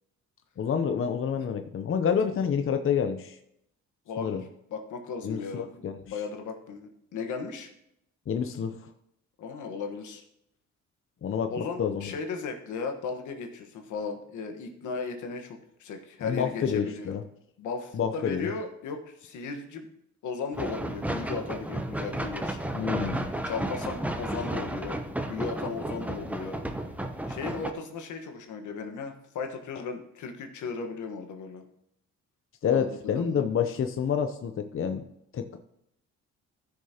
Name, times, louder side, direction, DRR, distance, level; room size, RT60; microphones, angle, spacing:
voice 1, 0.6-3.4 4.2-4.4 5.2-6.0 8.3-8.9 11.2-12.1 16.2-17.2 17.9-18.5 22.7-23.3 32.6-35.0 35.3-35.6, left 7 dB, 45° left, 7 dB, 0.7 m, -28 dB
voice 2, 4.1-5.7 6.1-7.7 9.4-10.2 11.5-17.1 17.6-19.9 20.2-22.6 23.4-25.0 25.3-26.6 27.3-31.6 32.7-33.4, left 5 dB, 80° left, 5 dB, 1.4 m, -36 dB
sound 1, 20.5-27.7, right 1 dB, 5° right, 0.8 m, -33 dB
14.5 x 6.5 x 2.9 m, 0.77 s
cardioid pair, 90°, 30 cm